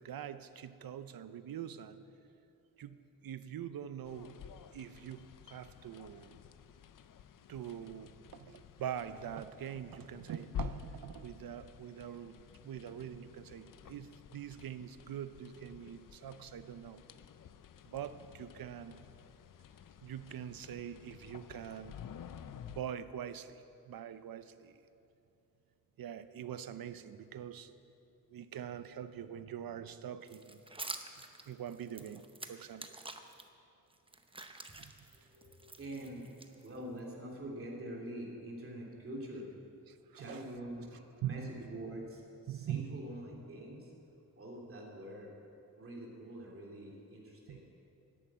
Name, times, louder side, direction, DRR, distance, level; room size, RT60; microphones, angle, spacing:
voice 1, 0.0-2.0 2.8-4.4 4.7-6.4 7.5-12.3 12.6-17.0 17.8-19.0 20.0-22.0 22.7-24.8 26.0-27.7 28.3-30.6 31.4-33.0 34.8-35.3 39.9-40.5 41.2-41.6 42.5-43.0 47.5-47.6, right 9 dB, 80° right, 12 dB, 0.7 m, -44 dB
sound 1, 4.0-22.8, left 8 dB, 65° left, 0.6 m, -51 dB
sound 2, 30.2-33.4 33.9-37.0, right 2 dB, 15° right, 0.7 m, -48 dB
voice 2, 35.3-39.5 40.1-43.9 44.4-45.3 45.8-47.6, right 1 dB, 40° right, -2 dB, 2.6 m, -45 dB
11.0 x 11.0 x 8.6 m, 2.7 s
wide cardioid pair, 145°, 35 cm